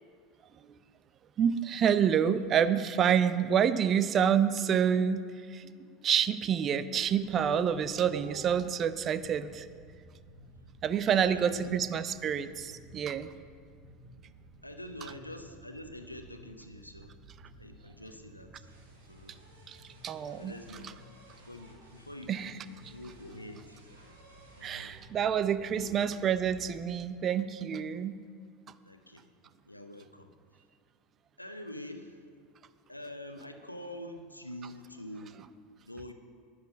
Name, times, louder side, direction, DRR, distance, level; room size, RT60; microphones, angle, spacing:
voice 1, 1.4-5.2 5.5-5.7 6.0-9.7 10.8-13.3 19.7-19.8 20.0-20.5 22.3-22.5 24.6-28.1, right 8 dB, 35° right, 14 dB, 0.5 m, -28 dB
sound 1, 7.0-26.8, right 1 dB, 75° right, 2.3 m, -54 dB
voice 2, 11.0-11.8 14.6-17.1 17.5-18.7 19.1-19.4 20.4-20.8 21.5-23.8 24.6-25.0 25.7-25.9 28.8-29.3 29.6-30.3 31.4-32.3 32.9-35.4 35.8-36.1, left 1 dB, 85° left, 6 dB, 0.8 m, -45 dB
10.5 x 9.6 x 6.0 m, 2.1 s
figure-of-eight pair, 75°, 0 cm